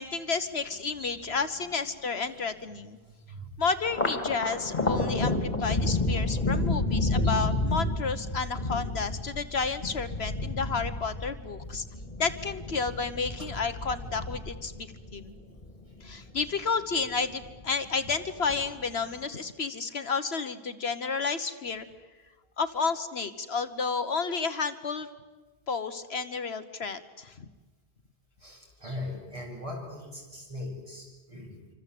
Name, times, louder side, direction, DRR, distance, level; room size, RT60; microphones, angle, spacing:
voice 1, 0.0-3.0 3.6-11.8 12.2-15.3 16.0-21.9 22.6-25.1 25.7-27.4, left 4 dB, 65° left, 10 dB, 1.4 m, -31 dB
voice 2, 0.9-1.8 2.2-2.3 3.0-3.7 5.6-5.7 7.2-7.4 13.4-13.5 15.9-16.1 28.4-31.6, left 1 dB, 30° right, -1 dB, 8.3 m, -41 dB
Thunder, 3.8-16.5 16.9-17.7 18.0-18.9, left 2 dB, 40° left, 2.6 m, -30 dB
27.0 x 25.5 x 8.4 m, 1.3 s
omnidirectional pair, 1.1 m